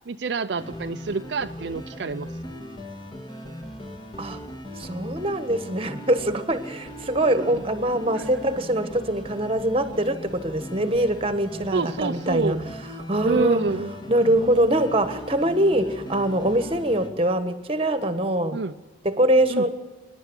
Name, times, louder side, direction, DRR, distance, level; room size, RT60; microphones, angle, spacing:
voice 1, 0.1-2.3 7.2-7.6 8.1-8.2 11.7-12.6 13.2-13.9 18.5-18.7 19.5-19.6, right 4 dB, 60° right, 8 dB, 0.5 m, -28 dB
sound 1, 0.6-17.1, equal, 25° left, 2.2 m, -38 dB
voice 2, 4.8-12.6 13.1-13.6 14.1-18.6 19.0-19.7, right 1 dB, 30° right, 10 dB, 1.4 m, -23 dB
25.5 x 11.0 x 9.6 m, 1.3 s
head